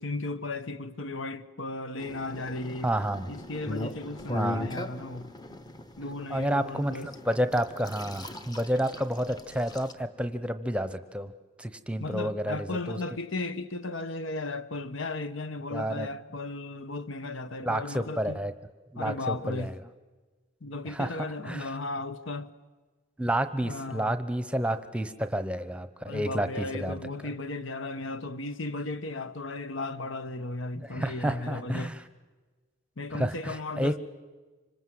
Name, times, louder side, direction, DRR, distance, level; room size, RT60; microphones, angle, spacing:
voice 1, 0.0-2.9 3.3-5.3 6.0-7.1 12.0-18.4 19.0-19.8 20.6-22.5 23.6-24.1 26.0-32.0 33.0-34.0, left 2 dB, 70° left, 1.2 m, -35 dB
sound 1, 2.0-9.9, left 2 dB, 20° left, 1.0 m, -39 dB
voice 2, 2.8-3.3 4.3-4.7 6.3-11.3 11.6-13.0 15.7-16.1 17.6-18.5 18.9-19.7 20.9-21.1 21.5-21.7 23.2-27.0 30.8-32.0 33.1-33.9, right 1 dB, 5° right, 0.9 m, -30 dB
26.0 x 25.0 x 7.9 m
head